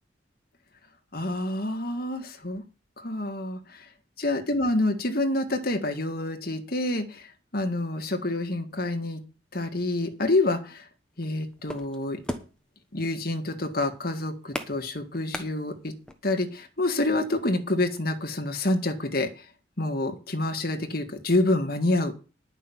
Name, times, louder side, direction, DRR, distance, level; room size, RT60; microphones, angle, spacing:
voice 1, 1.1-2.6 3.0-3.8 4.2-9.2 9.5-10.8 11.2-12.2 12.9-15.9 16.2-19.5 19.8-22.1, left 2 dB, 50° left, 4 dB, 1.9 m, -27 dB
sound 1, 11.1-16.1, left 1 dB, 5° left, 1.2 m, -38 dB
11.0 x 6.0 x 7.2 m, 0.33 s
head